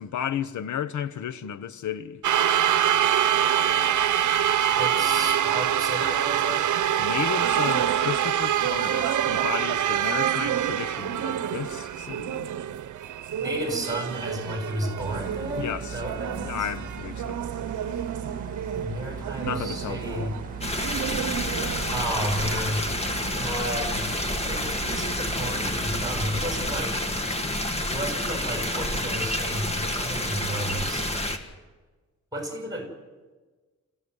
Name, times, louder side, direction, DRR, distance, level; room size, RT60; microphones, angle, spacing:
voice 1, 0.0-2.2 7.0-12.5 15.6-16.0 16.4-17.4 19.4-20.4, left 9 dB, 80° left, 0.9 m, -33 dB
sound 1, 2.2-22.0, right 10 dB, 90° right, 0.8 m, -26 dB
voice 2, 4.7-6.7 13.4-16.7 18.7-20.3 21.9-22.8 23.4-24.2 24.5-27.0 27.9-31.1 32.3-32.9, right 1 dB, 10° right, 6.4 m, -32 dB
sound 2, 15.0-26.8, right 5 dB, 30° right, 2.0 m, -38 dB
sound 3, 20.6-31.4, left 1 dB, 20° left, 1.9 m, -29 dB
28.0 x 16.0 x 9.7 m
wide cardioid pair, 160°, 29 cm